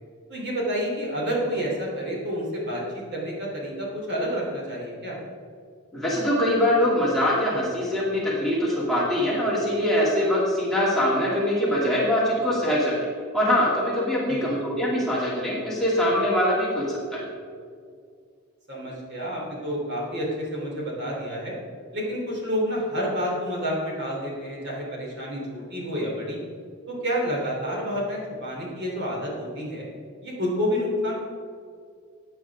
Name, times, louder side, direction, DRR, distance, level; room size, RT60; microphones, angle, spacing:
voice 1, 0.3-5.2 14.3-14.5 18.7-21.5 21.9-26.4 26.9-29.9 30.2-31.2, equal, 50° right, -3 dB, 3.3 m, -29 dB
voice 2, 5.9-13.1 13.3-17.2, left 1 dB, ahead, -8 dB, 2.7 m, -23 dB
15.0 x 9.0 x 3.7 m, 2.2 s
head